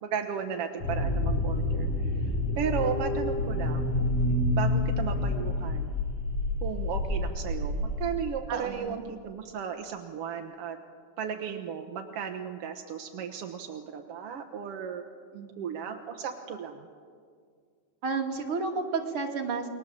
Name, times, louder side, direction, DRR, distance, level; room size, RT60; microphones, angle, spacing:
voice 1, 0.0-4.0 4.5-5.9 6.6-10.8 11.2-15.0 15.6-16.9, right 7 dB, 60° right, 4 dB, 1.7 m, -35 dB
sound 1, 0.8-8.1, left 2 dB, 90° left, 6.3 m, -28 dB
voice 2, 8.5-9.0 15.3-15.5 18.0-19.7, right 4 dB, 45° right, 1 dB, 3.1 m, -31 dB
29.5 x 22.0 x 7.6 m, 2.1 s
omnidirectional pair, 3.7 m